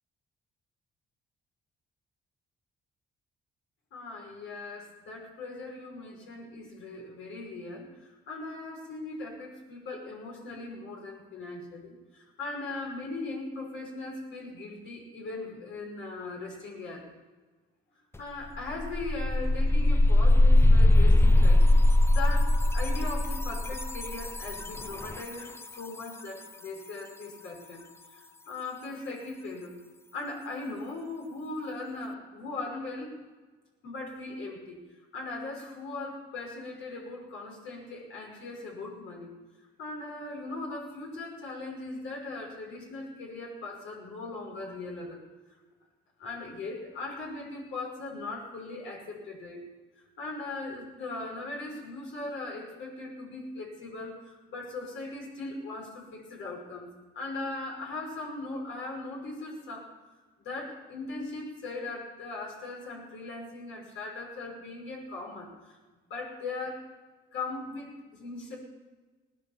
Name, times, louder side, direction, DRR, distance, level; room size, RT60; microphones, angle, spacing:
voice 1, 3.9-17.1 18.2-21.7 22.1-27.8 28.1-29.8 30.1-33.2 33.8-34.8 35.1-39.3 39.6-45.2 46.2-49.7 50.2-59.9 60.4-65.8 66.1-66.9 67.3-68.6, left 3 dB, 80° left, -1 dB, 5.6 m, -39 dB
sound 1, 18.1-18.2 18.6-25.3, left 1 dB, 10° left, 0.7 m, -22 dB
18.5 x 10.0 x 7.4 m, 1.3 s
cardioid pair, 90°, 20 cm